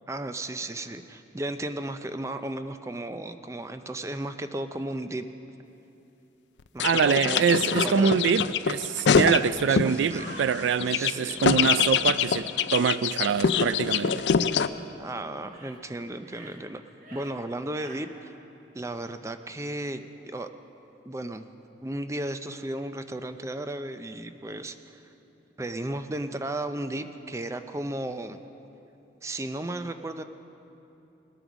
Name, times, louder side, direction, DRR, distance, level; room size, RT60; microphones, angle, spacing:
voice 1, 0.1-5.3 6.7-7.4 7.8-8.1 9.7-10.3 10.9-11.4 15.0-16.8 17.1-18.3 18.7-20.5 21.1-21.5 21.8-25.0 25.6-28.4 29.2-30.2, right 1 dB, 15° right, 9 dB, 0.4 m, -34 dB
sound 1, 6.8-9.9 10.3-14.7, left 7 dB, 70° left, 0.4 m, -24 dB
voice 2, 6.8-14.2, right 6 dB, 80° right, 15 dB, 0.3 m, -25 dB
sound 2, 10.1-10.6 14.6-14.9 15.4-15.8 16.2-16.6 16.9-17.3 17.7-18.0, right 2 dB, 45° right, 1.3 m, -46 dB
20.0 x 8.9 x 6.1 m, 2.9 s
head